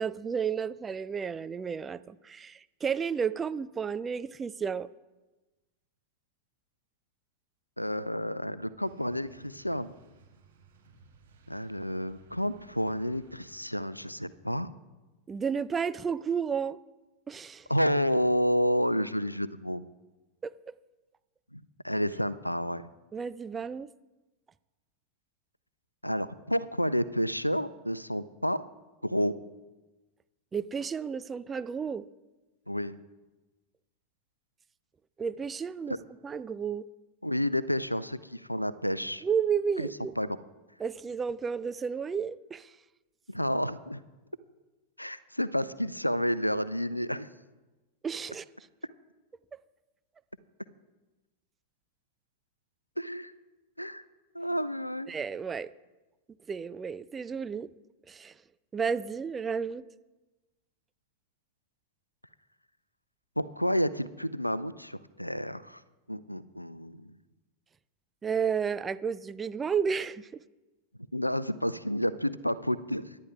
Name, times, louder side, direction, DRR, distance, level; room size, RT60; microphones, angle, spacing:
voice 1, 0.0-4.9 15.3-16.8 17.3-17.7 20.4-20.7 23.1-23.9 30.5-32.0 35.2-35.9 36.2-36.9 39.2-40.1 40.8-42.7 48.0-48.4 55.1-55.7 56.5-57.7 58.1-58.3 58.7-59.8 68.2-70.4, right 6 dB, 20° right, 0.4 m, -32 dB
voice 2, 7.8-9.9 11.5-14.7 17.7-19.8 21.5-22.8 26.0-28.6 29.0-29.3 32.7-33.0 35.9-36.0 37.2-39.2 39.8-39.9 40.2-40.4 43.3-44.0 45.0-47.3 53.0-53.3 53.8-54.0 54.3-55.1 63.4-65.8 66.1-67.1 71.1-73.2, equal, 90° left, 0.4 m, -30 dB
sound 1, 8.8-13.9, right 5 dB, 65° right, 2.9 m, -59 dB
26.5 x 11.5 x 2.3 m
figure-of-eight pair, 90°, 0 cm